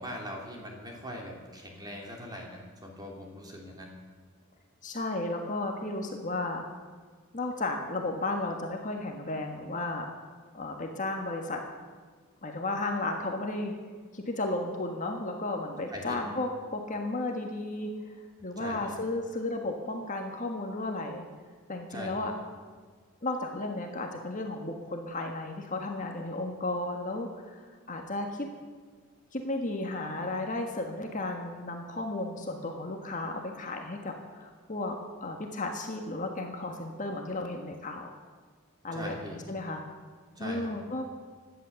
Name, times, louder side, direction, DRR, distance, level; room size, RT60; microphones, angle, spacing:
voice 1, 0.0-3.9 15.9-16.2 18.6-18.9 21.9-22.3 38.9-39.4 40.3-40.7, equal, 20° right, 0 dB, 3.0 m, -41 dB
voice 2, 4.8-6.6 7.3-10.1 10.5-11.6 12.4-13.7 14.1-17.9 18.4-21.3 21.7-22.3 23.2-28.5 29.3-38.1 38.8-39.8 40.4-41.1, left 2 dB, 35° left, 3 dB, 1.5 m, -34 dB
17.0 x 11.5 x 7.1 m, 1.5 s
head